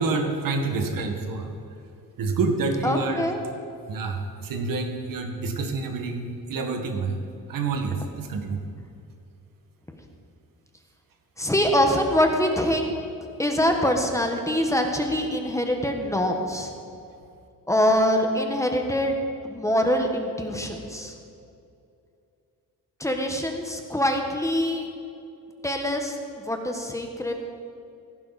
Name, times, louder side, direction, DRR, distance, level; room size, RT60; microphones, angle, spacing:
voice 1, 0.0-1.5 2.2-3.3 3.9-7.2 7.5-8.6, right 3 dB, 70° right, 4 dB, 1.9 m, -27 dB
voice 2, 2.8-3.4 11.4-13.0 13.4-16.7 17.7-21.1 23.0-24.9 25.6-27.3, equal, 10° left, 3 dB, 1.3 m, -24 dB
17.0 x 15.0 x 4.2 m, 2.5 s
cardioid pair, 145°, 35 cm